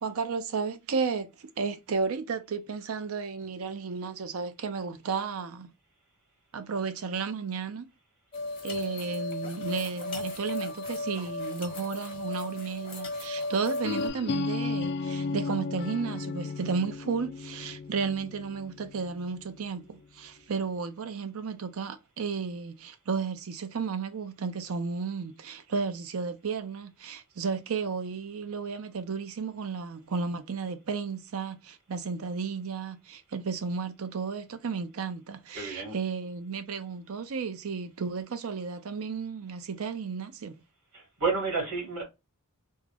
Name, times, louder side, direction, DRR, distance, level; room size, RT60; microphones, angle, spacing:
voice 1, 0.0-5.7 6.5-7.9 8.6-40.6, right 5 dB, 65° right, 0.5 m, -33 dB
sound 1, 8.3-14.1, left 2 dB, 25° left, 1.1 m, -35 dB
sound 2, 13.8-19.6, left 4 dB, 50° left, 0.3 m, -34 dB
voice 2, 35.5-36.0 40.9-42.0, right 4 dB, 90° right, 2.1 m, -30 dB
3.6 x 2.1 x 3.3 m
head